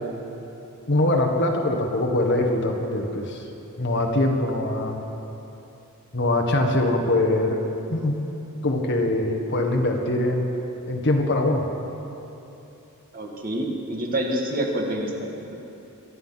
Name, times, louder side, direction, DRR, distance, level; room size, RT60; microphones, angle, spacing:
voice 1, 0.9-3.4 3.8-5.0 6.1-7.6 7.9-8.1 8.6-10.5 10.9-11.6, left 1 dB, 55° left, 3 dB, 1.6 m, -22 dB
voice 2, 13.1-15.5, right 1 dB, 40° right, 0 dB, 1.9 m, -27 dB
23.0 x 9.8 x 5.8 m, 3.0 s
head